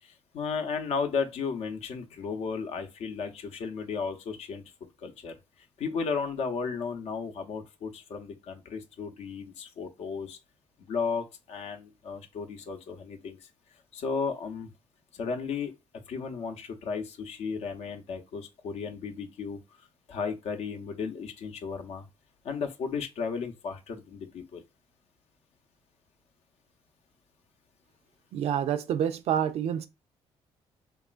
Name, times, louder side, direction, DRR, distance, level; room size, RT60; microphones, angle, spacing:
voice 1, 0.0-4.6 5.0-5.3 5.8-10.4 10.8-13.5 13.9-14.7 15.1-15.7 16.1-22.1 22.4-24.6, left 5 dB, 70° left, 0.6 m, -34 dB
voice 2, 28.3-29.9, right 9 dB, 65° right, 0.4 m, -28 dB
3.0 x 2.4 x 2.4 m
cardioid pair, 75°, 11 cm